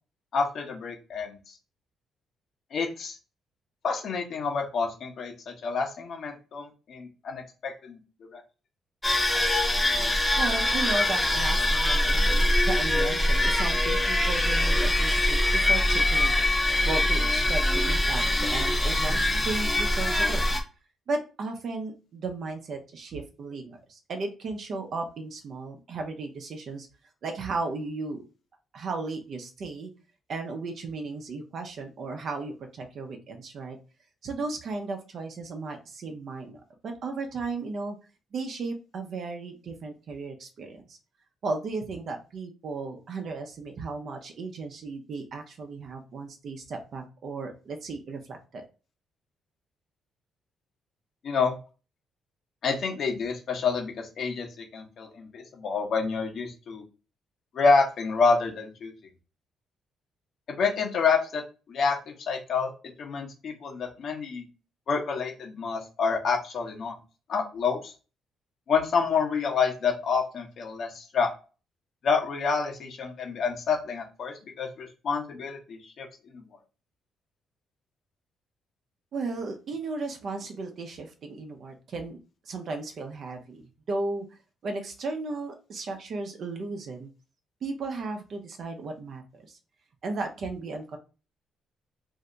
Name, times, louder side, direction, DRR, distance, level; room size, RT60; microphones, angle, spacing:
voice 1, 0.3-1.4 2.7-3.2 3.8-8.0 8.3-8.4 51.2-51.5 52.6-56.8 57.5-58.9 60.5-61.4 61.7-62.0 62.3-62.7 63.0-64.4 64.9-66.9 67.3-67.9 68.7-71.3 72.0-76.1 76.3-76.4, left 5 dB, 60° left, 1 dB, 1.0 m, -28 dB
sound 1, 9.0-20.6, left 1 dB, 10° left, 0.8 m, -23 dB
voice 2, 10.4-16.3 16.8-20.4 21.1-26.9 27.2-28.2 28.7-29.9 30.3-33.8 34.2-38.0 38.3-41.0 41.4-48.6 79.1-82.2 82.5-83.6 83.9-84.3 84.6-87.1 87.6-89.6 90.0-91.0, right 3 dB, 60° right, 4 dB, 0.7 m, -35 dB
2.7 x 2.2 x 3.8 m, 0.33 s
cardioid pair, 90°, 0 cm